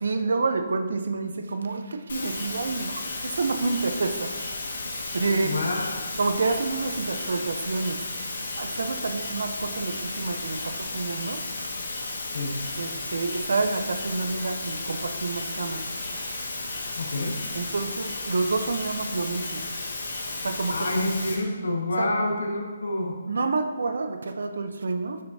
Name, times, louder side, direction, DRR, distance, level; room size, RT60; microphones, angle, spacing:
voice 1, 0.0-4.4 5.1-5.5 6.2-11.4 12.8-15.8 16.1-16.4 17.5-19.6 20.4-20.9 22.0-22.1 23.3-25.2, right 3 dB, 70° right, 8 dB, 0.6 m, -28 dB
sound 1, 2.1-21.3, left 3 dB, 60° left, 1.6 m, -34 dB
voice 2, 5.4-6.1 12.3-12.5 17.0-17.4 20.7-23.2, left 1 dB, 80° left, 1 dB, 1.4 m, -28 dB
7.9 x 6.7 x 2.7 m, 1.4 s
hypercardioid pair, 175°, 0 cm